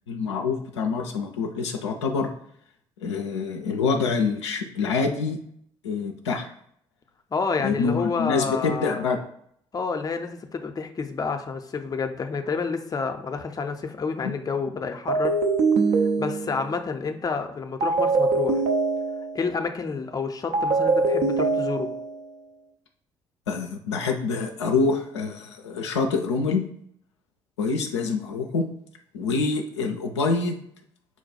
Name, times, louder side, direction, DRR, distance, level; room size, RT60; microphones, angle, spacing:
voice 1, 0.1-2.3 3.0-5.4 5.8-6.5 7.6-9.2 14.2-14.3 23.5-26.7 27.6-28.7 29.1-30.6, left 4 dB, 80° left, 3 dB, 0.4 m, -26 dB
voice 2, 7.3-9.0 9.7-15.4 16.0-18.6 19.3-21.9, left 5 dB, 25° left, 6 dB, 0.5 m, -29 dB
sound 1, 15.1-16.8 17.8-19.5 20.5-22.2, right 3 dB, 55° right, 0.5 m, -23 dB
4.4 x 2.2 x 4.1 m, 0.68 s
figure-of-eight pair, 45°, 15 cm